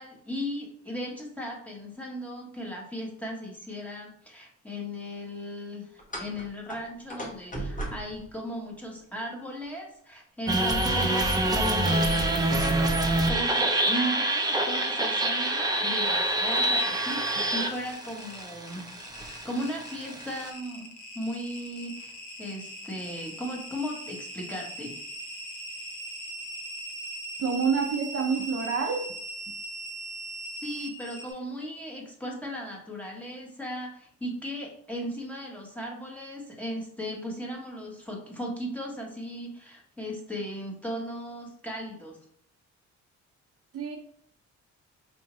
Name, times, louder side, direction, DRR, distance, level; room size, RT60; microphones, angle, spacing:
voice 1, 0.0-12.7 12.9-18.9 19.2-25.0 30.6-42.2, equal, 5° left, -2 dB, 1.3 m, -37 dB
sound 1, 6.0-9.0 11.8-12.1 12.5-12.6 13.1-13.9 16.5-16.6 17.6-17.7 18.0-18.1 18.8-19.4, right 1 dB, 25° left, 1.2 m, -39 dB
sound 2, 10.5-20.5, right 1 dB, 15° right, 0.6 m, -26 dB
sound 3, 16.5-31.3, right 1 dB, 75° left, 1.1 m, -40 dB
voice 2, 27.4-29.1 43.7-44.0, right 5 dB, 50° right, 2 dB, 0.6 m, -27 dB
4.9 x 2.6 x 3.1 m, 0.65 s
cardioid pair, 90°, 30 cm